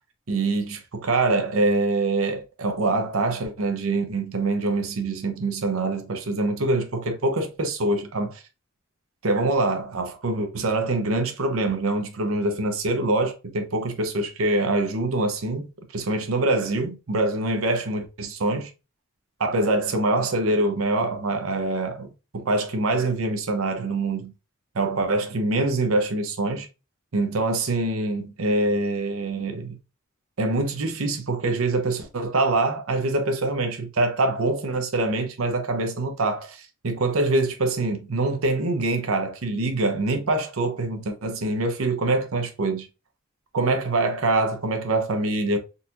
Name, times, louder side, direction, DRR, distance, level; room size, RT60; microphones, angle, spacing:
voice 1, 0.3-8.4 9.2-15.7 15.9-18.7 19.4-24.3 24.7-26.7 27.1-29.8 30.4-42.9 43.5-45.6, right 2 dB, 85° right, 0.7 m, -24 dB
3.9 x 2.8 x 2.5 m
head